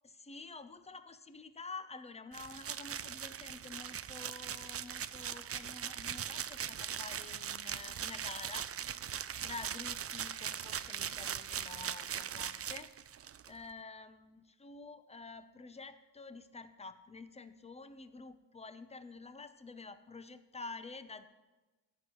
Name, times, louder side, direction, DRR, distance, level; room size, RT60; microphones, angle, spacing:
voice 1, 0.2-8.7 9.4-12.9 13.5-21.3, left 3 dB, 15° left, 11 dB, 0.6 m, -49 dB
sound 1, 2.3-13.5, right 9 dB, 35° right, 0.4 m, -40 dB
14.0 x 9.4 x 3.1 m, 1.2 s
cardioid pair, 60°, 46 cm